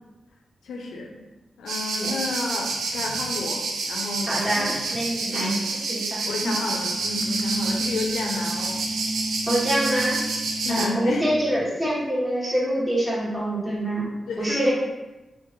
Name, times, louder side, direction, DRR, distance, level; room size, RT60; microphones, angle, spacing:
voice 1, 0.6-1.2 1.6-4.7 5.3-5.7 6.3-8.8 10.6-11.2 14.3-14.7, left 2 dB, 90° left, 1 dB, 0.4 m, -31 dB
sound 1, 1.7-10.9, right 3 dB, 90° right, 0.4 m, -29 dB
voice 2, 4.3-5.5 5.9-6.5 9.5-10.2 10.7-14.1 14.4-14.7, right 1 dB, 10° right, -6 dB, 1.4 m, -25 dB
sound 2, 7.0-11.7, equal, 20° left, 0.5 m, -33 dB
3.5 x 2.5 x 3.0 m, 1.1 s
cardioid pair, 55°, 0 cm